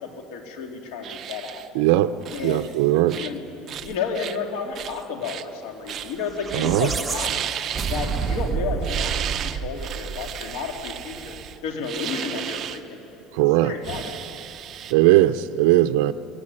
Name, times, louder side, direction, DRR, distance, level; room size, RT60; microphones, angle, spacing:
voice 1, 0.0-1.6 2.3-3.4 3.7-7.4 7.9-11.3 11.6-13.2 13.6-14.2, left 5 dB, 90° left, 2 dB, 3.2 m, -32 dB
sound 1, 1.0-1.7 2.2-2.8 3.1-3.4 3.7-4.4 4.8-5.5 5.9-6.2 6.5-6.7 7.1-8.5 8.8-12.8 13.8-14.9, right 9 dB, 40° right, 0.8 m, -34 dB
voice 2, 1.7-2.2 2.4-3.2 6.5-6.9 13.3-13.7 14.9-16.1, right 15 dB, 90° right, 10 dB, 0.5 m, -19 dB
sound 2, 6.2-10.6, right 6 dB, 20° right, 1.1 m, -29 dB
21.0 x 17.5 x 9.9 m, 2.8 s
cardioid pair, 140°, 0 cm